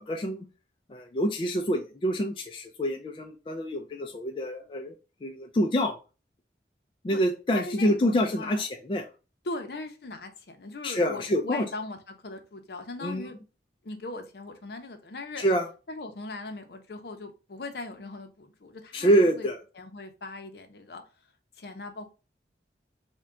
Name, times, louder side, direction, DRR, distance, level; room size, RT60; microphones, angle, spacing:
voice 1, 0.1-0.5 0.9-4.9 5.2-6.0 7.0-9.1 10.8-11.6 13.0-13.3 15.4-15.7 18.9-19.6, equal, 30° left, 3 dB, 0.3 m, -26 dB
voice 2, 7.5-8.6 9.4-13.3 13.8-15.4 15.9-19.1 19.4-19.5 19.7-21.0 21.6-22.1, left 2 dB, 65° left, 7 dB, 0.6 m, -39 dB
3.5 x 2.2 x 3.6 m, 0.32 s
head